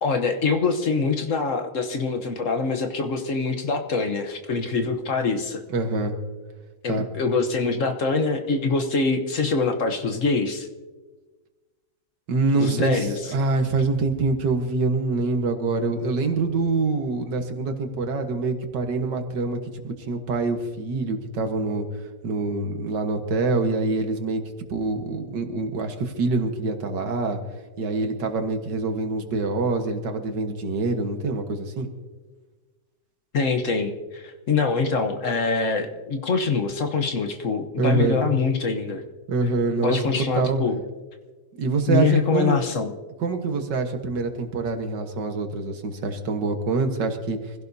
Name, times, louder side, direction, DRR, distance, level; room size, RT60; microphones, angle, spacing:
voice 1, 0.0-5.6 6.8-10.7 12.6-13.2 33.3-39.0 39.8-40.8 41.9-42.9, left 4 dB, 50° left, 6 dB, 1.3 m, -24 dB
voice 2, 5.7-6.2 6.9-7.1 12.3-21.9 22.2-24.4 24.7-27.4 27.8-31.9 37.8-38.2 39.3-40.6 41.6-42.6 43.2-47.4, right 3 dB, 80° right, 6 dB, 2.0 m, -25 dB
25.5 x 16.0 x 2.7 m, 1.3 s
omnidirectional pair, 1.8 m